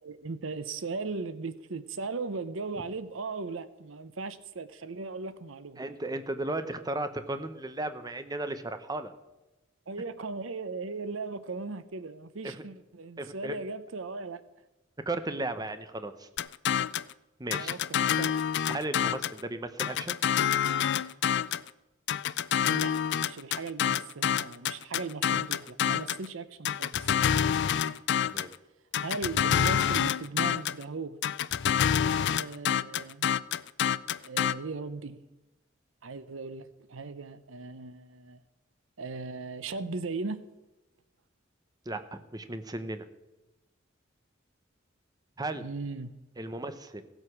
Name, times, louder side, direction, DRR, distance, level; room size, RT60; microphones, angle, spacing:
voice 1, 0.0-5.8 9.9-14.4 17.5-18.4 22.6-22.9 23.2-27.1 29.0-31.2 32.0-33.3 34.2-35.2 36.0-38.4 39.0-40.4 45.6-46.1, right 4 dB, 75° right, 0.7 m, -38 dB
voice 2, 5.8-9.1 12.4-12.7 13.2-13.6 15.1-16.3 17.4-17.8 18.7-20.2 28.2-28.6 41.9-43.1 45.4-45.7 46.4-47.0, right 2 dB, 20° right, 0.8 m, -35 dB
sound 1, 16.4-17.1 17.5-19.4 19.8-21.7 22.1-26.2 26.6-28.5 28.9-30.8 31.2-34.5, left 9 dB, 60° left, 0.4 m, -27 dB
16.0 x 8.0 x 6.0 m
head